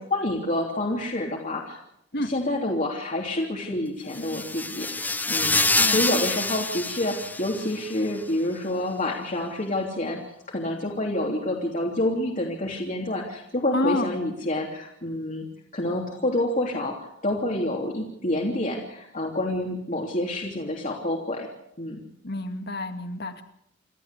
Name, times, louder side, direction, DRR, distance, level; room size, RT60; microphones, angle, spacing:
voice 1, 0.0-1.8 2.2-10.2 10.5-15.5 15.7-21.5 21.8-22.0, left 1 dB, 40° left, -1 dB, 3.1 m, -28 dB
sound 1, 4.1-8.0, left 3 dB, 10° left, 0.8 m, -26 dB
voice 2, 5.8-6.1 13.7-14.1 22.2-23.4, left 1 dB, 60° left, 7 dB, 2.2 m, -28 dB
28.0 x 13.5 x 8.3 m, 0.77 s
head